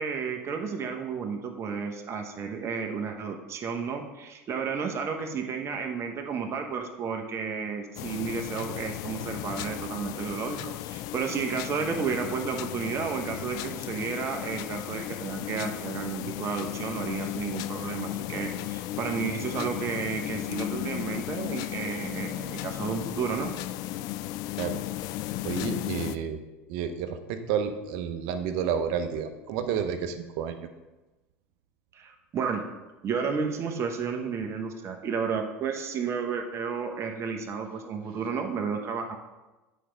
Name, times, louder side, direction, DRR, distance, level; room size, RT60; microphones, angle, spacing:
voice 1, 0.0-23.5 31.9-32.6 33.0-39.2, right 5 dB, 40° right, 3 dB, 1.0 m, -32 dB
sound 1, 8.0-26.2, left 15 dB, 60° left, 0.4 m, -35 dB
voice 2, 25.4-26.4 26.7-30.6, right 7 dB, 65° right, 8 dB, 0.8 m, -30 dB
8.4 x 4.5 x 5.2 m, 1.1 s
hypercardioid pair, 85°, 7 cm